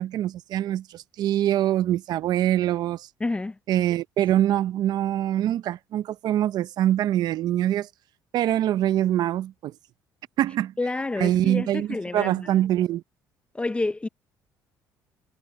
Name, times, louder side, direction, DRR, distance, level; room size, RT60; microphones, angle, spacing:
voice 1, 0.0-3.1 3.7-7.9 8.3-9.7 10.4-10.7 11.2-11.9 12.1-13.0, right 12 dB, 65° right, 0.7 m, -24 dB
voice 2, 3.2-3.6 10.8-12.7 13.5-14.1, left 2 dB, 15° left, 0.6 m, -29 dB
cardioid pair, 95°, 7 cm